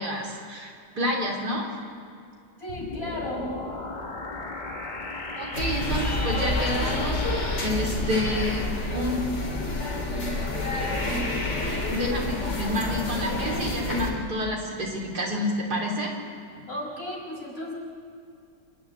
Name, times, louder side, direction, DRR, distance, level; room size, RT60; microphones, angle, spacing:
voice 1, 0.0-1.7 5.3-9.2 10.1-10.3 11.0-11.4 11.9-16.1, left 1 dB, 70° right, -1 dB, 4.0 m, -29 dB
voice 2, 2.6-3.5 16.7-17.7, left 1 dB, 55° left, -2 dB, 5.7 m, -34 dB
sound 1, 2.7-7.7, left 3 dB, 30° left, 1.5 m, -36 dB
sound 2, 5.5-14.1, left 2 dB, 85° left, 4.3 m, -28 dB
26.5 x 11.5 x 9.3 m, 2.4 s
omnidirectional pair, 1.8 m